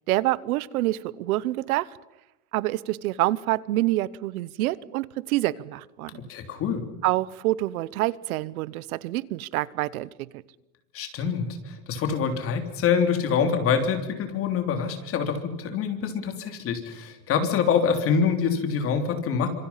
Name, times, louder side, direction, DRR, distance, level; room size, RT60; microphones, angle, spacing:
voice 1, 0.1-1.9 2.5-6.2 7.0-10.1, right 17 dB, 80° right, 20 dB, 1.0 m, -27 dB
voice 2, 6.3-6.8 10.9-19.5, left 6 dB, 30° left, 6 dB, 3.2 m, -25 dB
27.5 x 26.5 x 5.7 m, 0.95 s
supercardioid pair, 160°, 43 cm